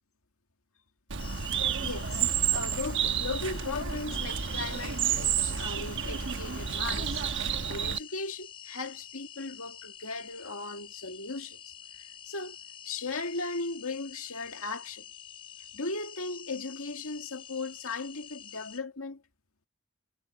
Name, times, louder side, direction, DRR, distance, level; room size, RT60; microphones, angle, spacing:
Bird, 1.1-8.0, right 8 dB, 55° right, 1.1 m, -30 dB
rainforest single cicada, 1.2-18.8, left 10 dB, 25° left, 3.1 m, -48 dB
voice 1, 1.8-2.3 2.5-12.6 12.8-15.1 15.7-19.2, left 3 dB, 75° left, 2.1 m, -37 dB
head